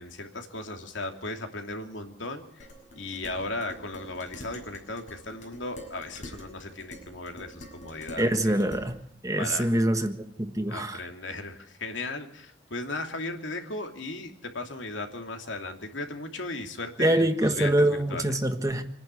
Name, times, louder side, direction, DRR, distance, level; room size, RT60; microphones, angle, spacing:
voice 1, 0.0-2.7 2.9-8.5 9.4-9.8 10.7-18.4, left 2 dB, 85° left, 2.8 m, -36 dB
Dishes pots and pans, 2.6-8.9, equal, 40° left, 6.6 m, -45 dB
voice 2, 8.2-9.0 9.2-10.1 10.4-11.0 17.0-18.8, right 1 dB, 20° right, 1.5 m, -24 dB
26.5 x 10.5 x 9.6 m
head